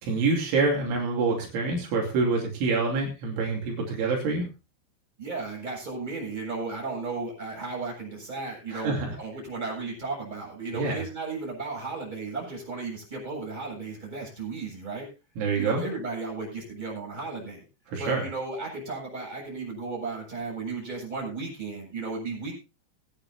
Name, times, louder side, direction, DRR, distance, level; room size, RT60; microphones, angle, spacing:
voice 1, 0.0-4.4 8.7-9.1 10.7-11.0 15.4-15.8 17.9-18.3, right 3 dB, 70° right, -1 dB, 5.2 m, -26 dB
voice 2, 5.2-15.1 15.6-17.6 18.0-22.5, right 3 dB, 10° right, -3 dB, 7.3 m, -35 dB
22.5 x 9.7 x 2.8 m, 0.29 s
omnidirectional pair, 5.7 m